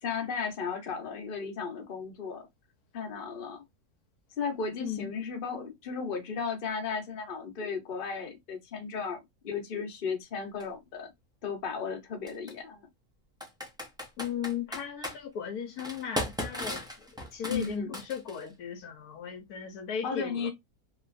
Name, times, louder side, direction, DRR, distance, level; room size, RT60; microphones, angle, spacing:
voice 1, 0.0-2.5 2.9-3.6 4.4-11.1 11.4-12.9 17.5-17.9 20.0-20.5, left 5 dB, 40° left, 1.0 m, -35 dB
voice 2, 4.8-5.1 14.2-17.1 17.3-20.5, left 8 dB, 75° left, 1.2 m, -36 dB
Computer keyboard, 10.6-10.7 12.3-12.5 13.4-15.2 15.8-18.5, left 1 dB, 5° right, 0.5 m, -36 dB
3.1 x 3.0 x 2.4 m
omnidirectional pair, 1.6 m